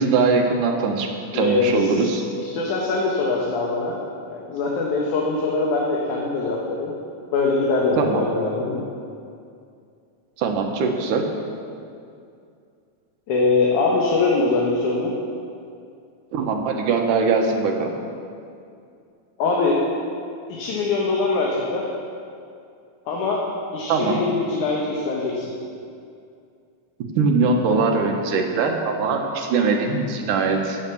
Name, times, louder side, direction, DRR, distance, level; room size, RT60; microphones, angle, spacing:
voice 1, 0.0-2.2 8.0-8.2 10.4-11.2 16.3-17.9 23.9-24.2 27.0-30.8, right 4 dB, 90° right, 2 dB, 2.9 m, -21 dB
voice 2, 1.3-2.1 2.4-4.0 4.3-6.9 7.3-8.9 13.3-15.1 19.4-19.8 20.5-21.9 23.1-23.4 23.7-25.5, left 3 dB, 75° left, -3 dB, 2.8 m, -22 dB
17.5 x 7.3 x 7.2 m, 2.4 s
omnidirectional pair, 3.6 m